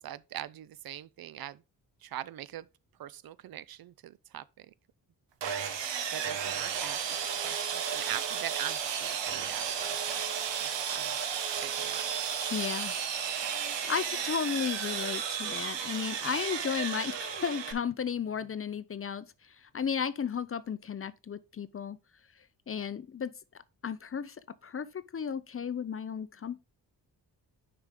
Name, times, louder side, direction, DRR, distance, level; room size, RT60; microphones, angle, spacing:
voice 1, 0.0-1.6 2.0-2.7 3.0-4.7 6.1-10.2 10.5-11.2 11.5-12.1, right 12 dB, 55° right, 0.5 m, -42 dB
Sawing, 5.4-17.7, right 7 dB, 75° right, 1.1 m, -33 dB
voice 2, 12.5-12.9 13.4-22.0 22.7-23.3 23.8-24.4 24.6-26.6, left 7 dB, 30° left, 0.5 m, -34 dB
6.4 x 4.9 x 3.7 m
supercardioid pair, 55°, 44 cm